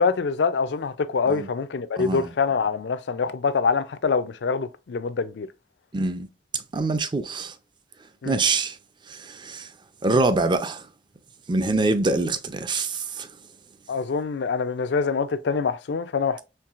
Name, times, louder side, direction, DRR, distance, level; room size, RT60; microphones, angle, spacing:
voice 1, 0.0-5.5 8.2-8.4 13.9-16.4, left 5 dB, 70° left, 0.4 m, -25 dB
voice 2, 2.0-2.3 5.9-6.3 6.5-7.5 8.3-8.8 9.1-9.7 10.0-10.9 11.5-13.3, right 3 dB, 25° right, 0.4 m, -25 dB
4.5 x 3.3 x 2.4 m
head